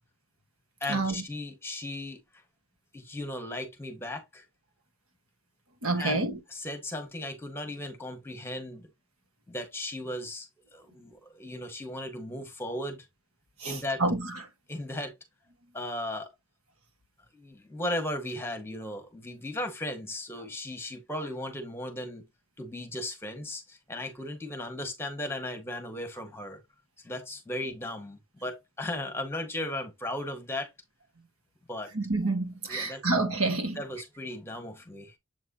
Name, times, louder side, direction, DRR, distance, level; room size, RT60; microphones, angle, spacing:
voice 1, 0.8-2.2 2.9-4.4 6.0-6.2 6.5-8.9 9.5-10.5 10.7-13.1 13.7-14.0 14.7-15.1 15.7-16.3 17.3-22.2 22.6-26.6 27.0-30.7 31.7-31.9 32.7-33.0 33.7-35.1, left 1 dB, 10° left, 1.4 m, -36 dB
voice 2, 5.8-6.4 13.6-14.3 31.9-33.8, right 2 dB, 90° right, 1.6 m, -28 dB
7.8 x 4.6 x 2.8 m
head